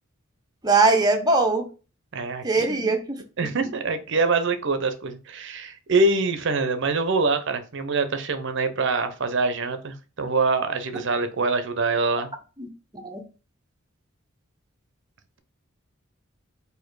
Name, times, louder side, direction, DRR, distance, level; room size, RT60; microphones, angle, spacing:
voice 1, 0.6-1.6 2.4-3.2 12.6-12.7 13.0-13.2, right 3 dB, 20° right, 3 dB, 0.7 m, -20 dB
voice 2, 2.1-2.9 3.4-12.3, right 3 dB, 60° right, 9 dB, 0.6 m, -25 dB
4.3 x 2.7 x 4.6 m, 0.33 s
head